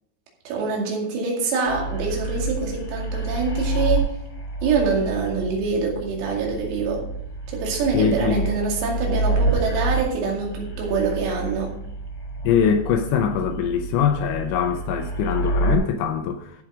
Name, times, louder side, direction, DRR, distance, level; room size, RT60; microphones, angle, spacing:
voice 1, 0.5-4.2 4.6-7.0 7.5-11.7, right 4 dB, 90° right, -1 dB, 5.2 m, -25 dB
sound 1, 1.7-15.8, right 2 dB, 55° left, 1.6 m, -28 dB
voice 2, 7.9-8.5 12.4-16.5, left 8 dB, 80° left, 6 dB, 2.8 m, -22 dB
14.0 x 5.8 x 4.9 m, 0.74 s
omnidirectional pair, 5.9 m